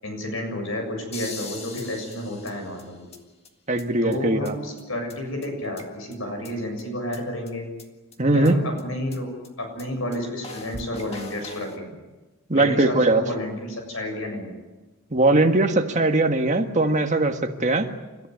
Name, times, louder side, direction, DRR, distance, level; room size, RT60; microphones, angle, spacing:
voice 1, 0.0-3.1 4.0-7.7 8.3-9.3 9.6-11.9 12.5-14.5, left 1 dB, 65° left, 4 dB, 7.4 m, -31 dB
sound 1, 1.1-3.2 3.4-3.5 3.8-3.9 4.1-4.2 4.4-4.5 4.8-4.9 5.1-5.2 5.4-6.1 6.4-6.5 6.8-6.9 7.1-7.2 7.5-7.6 7.8-7.9 8.1-8.2 8.4-8.5 8.8-8.9 9.1-9.2 9.4-9.5 9.8-9.9 10.1-10.2 10.4-11.8, left 3 dB, 25° left, 2.0 m, -40 dB
voice 2, 3.7-4.6 8.2-8.6 12.5-13.2 15.1-17.9, right 2 dB, 30° right, 5 dB, 1.7 m, -20 dB
29.5 x 14.5 x 9.4 m, 1.2 s
head